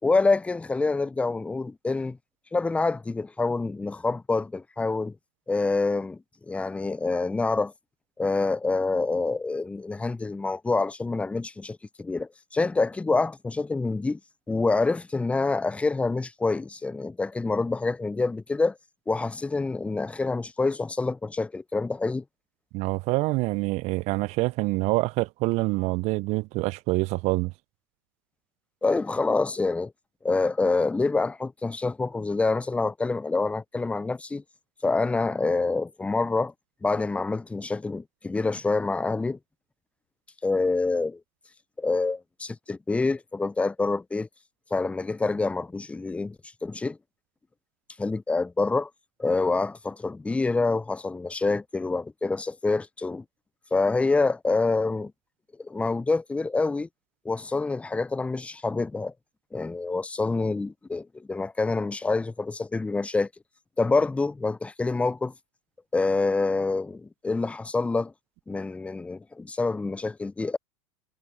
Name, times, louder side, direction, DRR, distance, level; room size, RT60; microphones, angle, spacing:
voice 1, 0.0-2.2 2.5-5.1 5.5-6.2 6.5-7.7 8.2-14.2 14.5-18.8 19.1-22.2 28.8-29.9 30.2-34.4 34.8-36.5 36.8-39.4 40.4-41.2 41.8-44.3 44.7-46.4 46.6-47.0 48.0-48.9 49.2-53.2 53.7-55.1 55.6-56.9 57.2-59.1 59.5-63.3 63.8-65.3 65.9-68.1 68.5-70.6, left 3 dB, 5° left, 0.5 m, -26 dB
voice 2, 22.7-27.5, right 22 dB, 45° right, 0.5 m, -26 dB
hypercardioid pair, 90°, 16 cm